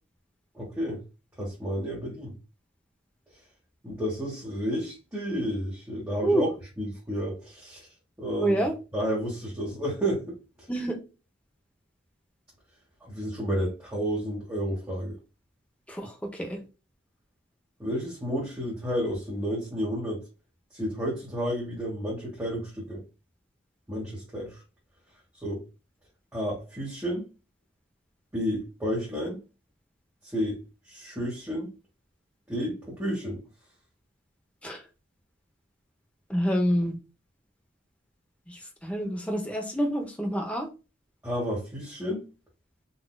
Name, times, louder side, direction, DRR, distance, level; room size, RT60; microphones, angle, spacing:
voice 1, 0.5-1.0 1.4-2.3 3.8-6.5 6.8-7.9 8.2-8.6 8.9-10.3 13.1-15.1 17.8-20.2 20.7-23.0 23.9-24.6 25.4-25.6 26.3-27.2 28.3-29.4 30.3-31.7 32.5-33.4 41.2-42.2, equal, 15° right, 1.3 m, -31 dB
voice 2, 8.4-8.7 10.7-11.0 15.9-16.6 34.6-34.8 36.3-37.0 38.5-40.7, equal, 5° left, 0.8 m, -27 dB
4.0 x 2.7 x 2.3 m
head